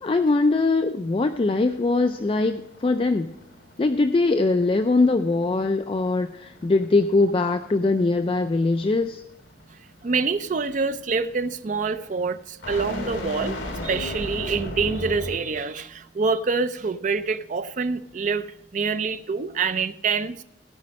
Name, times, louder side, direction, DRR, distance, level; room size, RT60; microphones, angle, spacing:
voice 1, 0.0-3.3 3.8-9.2, left 3 dB, 30° left, 0.3 m, -22 dB
sound 1, 1.1-15.6, left 1 dB, 75° left, 1.8 m, -38 dB
voice 2, 10.0-18.5 18.7-20.4, right 4 dB, 40° right, 0.4 m, -26 dB
16.0 x 5.4 x 5.2 m
head